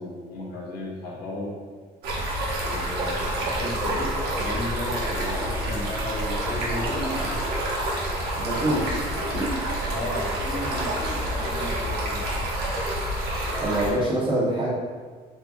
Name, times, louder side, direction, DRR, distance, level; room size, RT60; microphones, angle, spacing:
voice 1, 0.0-1.5 2.6-7.4 9.8-12.4, left 1 dB, 65° left, -6 dB, 1.5 m, -34 dB
Stream, 2.0-13.9, right 1 dB, 70° right, 0.9 m, -28 dB
voice 2, 8.4-9.5 13.6-14.7, right 1 dB, 30° right, -6 dB, 1.1 m, -25 dB
3.5 x 3.2 x 2.5 m, 1.5 s
cardioid pair, 110°, 17 cm